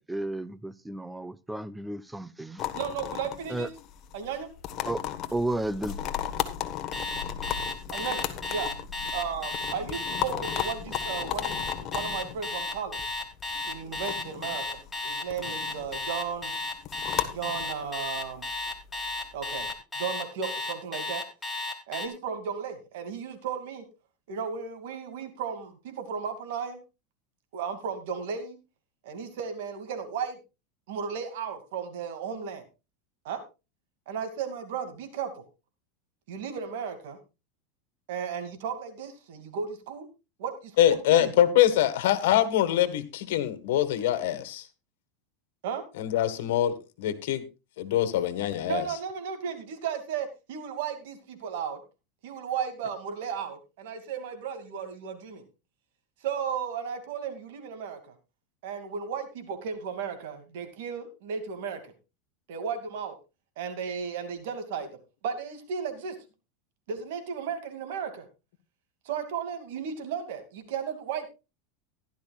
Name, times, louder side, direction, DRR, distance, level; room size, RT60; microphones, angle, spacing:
voice 1, 0.0-2.6 3.5-3.7 4.9-5.0 5.3-6.0, right 1 dB, 5° right, 0.5 m, -32 dB
sound 1, 2.6-19.7, left 10 dB, 40° left, 1.3 m, -36 dB
voice 2, 2.7-3.7 4.1-4.5 7.9-8.7 9.1-13.0 13.7-16.5 17.3-18.4 19.3-19.7 19.9-21.2 21.9-23.8 24.3-26.8 27.5-28.6 29.0-30.4 30.9-32.6 33.2-33.4 34.1-35.4 36.3-37.2 38.1-40.1 40.4-41.4 45.6-45.8 48.7-51.8 52.2-55.4 56.2-58.1 58.6-61.9 62.5-63.2 63.6-64.9 65.2-66.2 66.9-68.2 69.0-71.3, right 7 dB, 75° right, 2.4 m, -35 dB
Alarm, 6.9-22.1, left 2 dB, 10° left, 1.9 m, -33 dB
voice 3, 40.8-44.7 46.0-47.4 47.8-48.8, left 12 dB, 80° left, 1.7 m, -24 dB
15.5 x 11.5 x 2.4 m
supercardioid pair, 145°, 0 cm